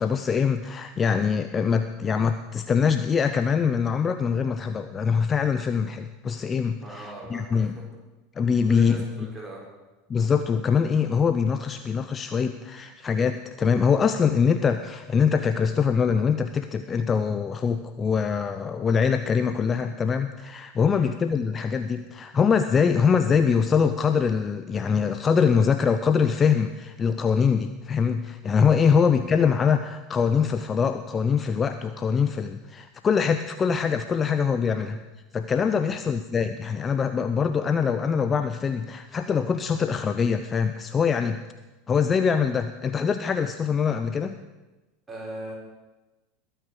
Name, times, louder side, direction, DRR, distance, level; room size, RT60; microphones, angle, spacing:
voice 1, 0.0-7.8 8.4-9.3 10.1-35.0 35.3-41.4 41.9-44.3, left 6 dB, 25° left, 9 dB, 0.7 m, -23 dB
voice 2, 6.8-7.8 8.7-9.6 20.9-21.1 34.6-34.9 35.8-36.0 45.1-45.6, right 2 dB, 10° right, -4 dB, 6.4 m, -40 dB
21.0 x 9.1 x 6.4 m, 1.1 s
figure-of-eight pair, 80°, 0 cm